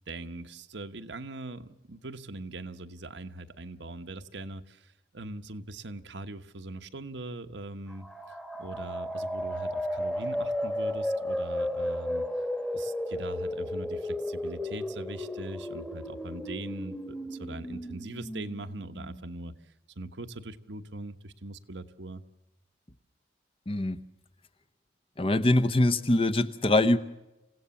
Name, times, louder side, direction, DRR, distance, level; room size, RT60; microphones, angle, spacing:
voice 1, 0.1-8.1 8.6-12.3 12.7-19.5 20.0-22.2, right 2 dB, 75° right, 8 dB, 1.1 m, -41 dB
sound 1, 7.9-19.6, left 1 dB, 5° left, 1.4 m, -34 dB
voice 2, 23.7-24.0 25.2-27.0, left 1 dB, 30° left, 11 dB, 0.9 m, -23 dB
28.0 x 16.5 x 7.1 m, 0.99 s
head